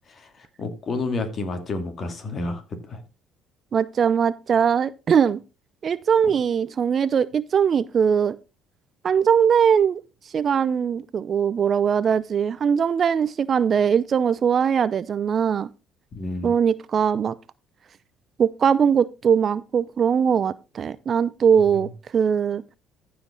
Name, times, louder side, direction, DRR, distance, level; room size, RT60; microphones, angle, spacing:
voice 1, 0.1-3.0 6.2-6.3 16.1-16.5, left 3 dB, 45° left, 2.6 m, -30 dB
voice 2, 3.7-5.4 5.8-8.4 9.0-10.0 10.3-15.7 16.4-17.3 18.4-22.6, right 7 dB, 45° right, 0.6 m, -21 dB
14.5 x 5.2 x 3.9 m
hypercardioid pair, 60°, 0 cm